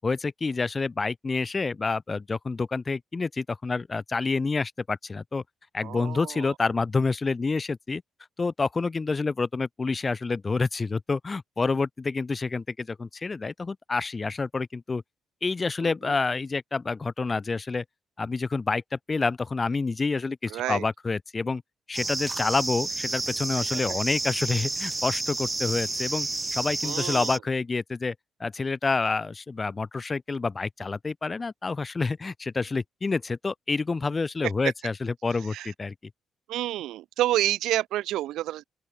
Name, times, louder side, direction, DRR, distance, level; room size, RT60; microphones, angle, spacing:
voice 1, 0.0-5.4 5.7-8.0 8.4-15.0 15.4-17.8 18.2-21.6 21.9-28.1 28.4-35.9, left 4 dB, 30° left, 7.7 m, -28 dB
voice 2, 5.8-6.5 15.8-16.1 20.5-20.8 23.7-24.0 26.8-27.4 35.5-35.7 36.5-38.6, right 14 dB, 85° right, 4.9 m, -29 dB
sound 1, 21.9-27.4, right 2 dB, 20° right, 0.9 m, -30 dB
open air
cardioid pair, 90°, 0 cm